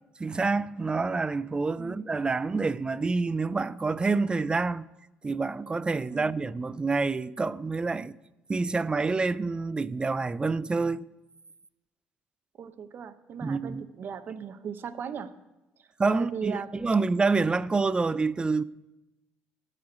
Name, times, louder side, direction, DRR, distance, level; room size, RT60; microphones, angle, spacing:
voice 1, 0.2-4.9 5.2-8.2 8.5-11.0 13.4-13.8 16.0-18.6, right 4 dB, 20° right, 0.4 m, -27 dB
voice 2, 12.6-15.3 15.8-16.7, right 7 dB, 55° right, 0.9 m, -38 dB
12.5 x 5.0 x 8.2 m
cardioid pair, 90°, 4 cm